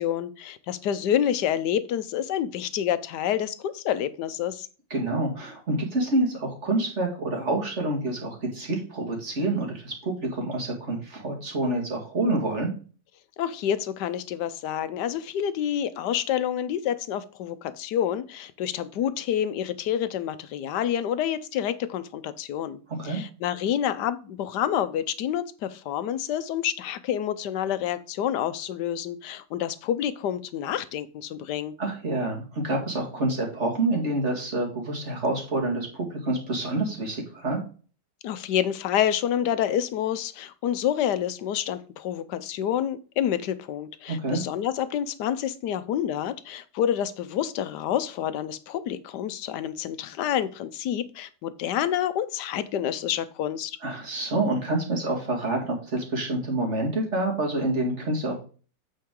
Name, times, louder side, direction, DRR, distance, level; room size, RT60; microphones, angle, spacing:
voice 1, 0.0-4.7 13.4-31.7 38.2-53.8, left 10 dB, 75° left, 14 dB, 1.3 m, -28 dB
voice 2, 4.9-12.7 22.9-23.2 31.8-37.6 44.1-44.4 53.8-58.4, right 2 dB, 40° right, 0 dB, 2.2 m, -27 dB
8.5 x 5.5 x 3.8 m, 0.37 s
omnidirectional pair, 1.9 m